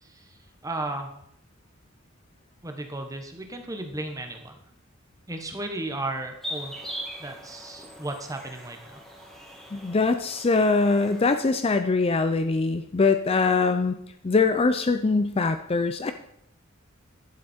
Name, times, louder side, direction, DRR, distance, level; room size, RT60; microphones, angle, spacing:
voice 1, 0.6-1.1 2.6-4.6 5.3-6.9 7.2-9.0, right 2 dB, 15° right, 4 dB, 1.2 m, -34 dB
sound 1, 6.4-11.4, equal, ahead, 2.1 m, -41 dB
voice 2, 9.7-13.9 14.2-16.1, left 3 dB, 30° left, 9 dB, 0.4 m, -22 dB
11.5 x 7.5 x 4.4 m, 0.75 s
head